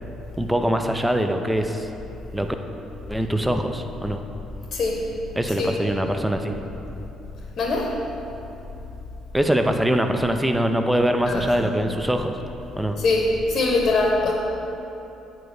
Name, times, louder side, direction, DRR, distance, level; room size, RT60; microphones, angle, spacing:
voice 1, 0.4-1.9 2.3-2.5 3.1-4.2 5.4-6.5 9.3-12.3 12.8-13.0, equal, 5° right, 6 dB, 0.7 m, -23 dB
voice 2, 4.7-5.1 5.6-5.8 7.6-8.0 11.3-11.5 13.0-14.3, left 2 dB, 45° left, 0 dB, 1.0 m, -22 dB
7.8 x 4.8 x 6.8 m, 3.0 s
figure-of-eight pair, 45°, 0 cm